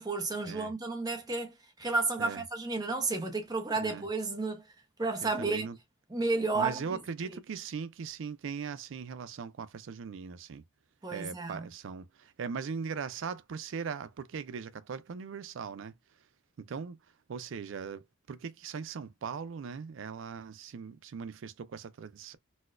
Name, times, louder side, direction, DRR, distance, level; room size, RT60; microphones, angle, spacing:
voice 1, 0.0-4.6 5.0-5.7 6.1-7.0 11.0-11.7, right 3 dB, 20° right, 0.7 m, -32 dB
voice 2, 5.2-5.8 6.5-10.6 11.1-15.9 16.6-17.0 17.3-22.4, right 6 dB, 65° right, 0.4 m, -39 dB
4.1 x 2.2 x 2.4 m
head